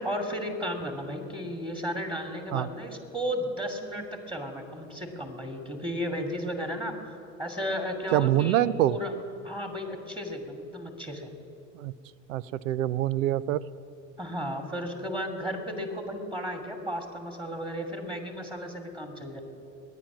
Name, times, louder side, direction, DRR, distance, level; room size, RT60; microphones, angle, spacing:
voice 1, 0.0-6.9 7.4-9.1 9.4-11.3 14.2-19.4, equal, 15° right, 3 dB, 2.5 m, -34 dB
voice 2, 8.1-8.9 11.8-11.9 12.3-13.6, right 13 dB, 80° right, 20 dB, 0.5 m, -25 dB
21.0 x 9.3 x 6.2 m, 2.5 s
hypercardioid pair, 75°, 38 cm